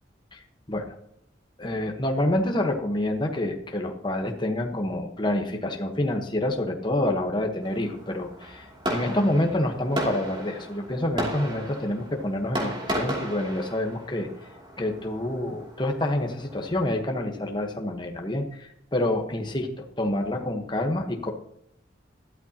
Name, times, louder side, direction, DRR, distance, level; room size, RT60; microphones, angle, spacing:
voice 1, 1.6-14.3 14.8-21.3, left 1 dB, 25° left, 3 dB, 1.2 m, -27 dB
Fireworks, 7.6-17.0, equal, 25° right, 2.8 m, -35 dB
12.5 x 12.5 x 2.9 m, 0.74 s
head